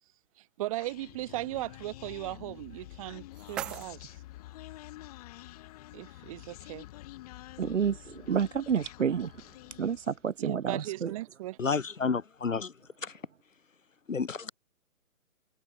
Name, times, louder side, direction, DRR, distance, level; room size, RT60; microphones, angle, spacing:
voice 1, 0.6-4.0 5.9-6.9 10.4-11.6, right 16 dB, 25° right, 2.4 m, -37 dB
Human voice, 0.8-10.3, left 16 dB, 25° left, 4.3 m, -48 dB
sound 1, 2.8-4.8, right 11 dB, ahead, 0.7 m, -43 dB
voice 2, 7.6-8.0 8.3-9.3 9.8-11.1, right 7 dB, 55° right, 0.7 m, -29 dB
voice 3, 11.6-12.7 13.0-13.1 14.1-14.5, left 5 dB, 60° left, 6.4 m, -30 dB
figure-of-eight pair, 140°, 44 cm